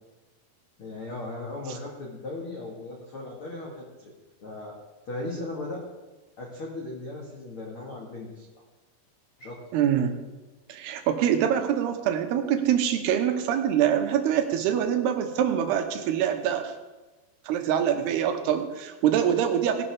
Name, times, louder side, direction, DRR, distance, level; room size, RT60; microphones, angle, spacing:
voice 1, 0.8-4.1 4.4-4.7 5.1-5.8 6.4-8.6 9.4-9.6, left 2 dB, 45° left, -3 dB, 2.0 m, -37 dB
voice 2, 9.7-10.2 10.7-16.7 17.5-19.9, right 9 dB, 75° right, 7 dB, 2.9 m, -24 dB
18.5 x 11.0 x 3.6 m, 1.2 s
omnidirectional pair, 4.9 m